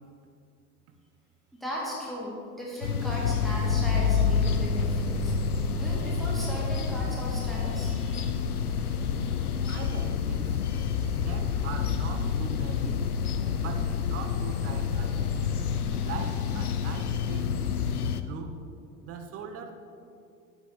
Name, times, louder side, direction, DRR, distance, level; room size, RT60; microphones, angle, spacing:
voice 1, 1.5-8.3, left 1 dB, ahead, -5 dB, 2.0 m, -37 dB
sound 1, 2.8-18.2, left 6 dB, 85° left, 0.5 m, -28 dB
voice 2, 9.7-10.6 11.2-13.1 13.6-15.3 16.0-17.6 18.3-18.6 19.0-19.7, right 5 dB, 30° right, 6 dB, 0.9 m, -40 dB
8.9 x 8.2 x 3.5 m, 2.4 s
figure-of-eight pair, 80°, 44 cm